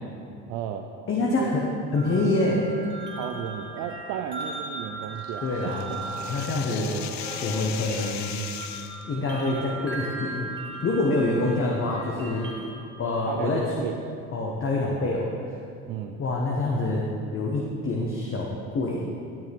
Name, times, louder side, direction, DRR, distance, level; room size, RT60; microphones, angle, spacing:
voice 1, 0.5-0.9 1.2-1.6 3.1-5.7 6.8-7.1 13.3-14.0 15.9-16.2, right 9 dB, 75° right, 4 dB, 0.6 m, -34 dB
voice 2, 1.1-1.7 1.9-2.6 5.4-6.9 7.4-8.3 9.1-10.5 10.8-12.5 13.0-13.6 14.3-15.3 16.2-17.0 17.3-18.5 18.7-19.0, left 2 dB, 40° left, -2 dB, 1.3 m, -26 dB
sound 1, 1.9-12.7, right 3 dB, 35° right, 2.0 m, -39 dB
sound 2, 5.1-8.2, left 1 dB, 25° left, 1.9 m, -43 dB
sound 3, 5.2-9.0, left 10 dB, 60° left, 0.6 m, -37 dB
14.0 x 6.4 x 3.6 m, 2.5 s
supercardioid pair, 85°, 32 cm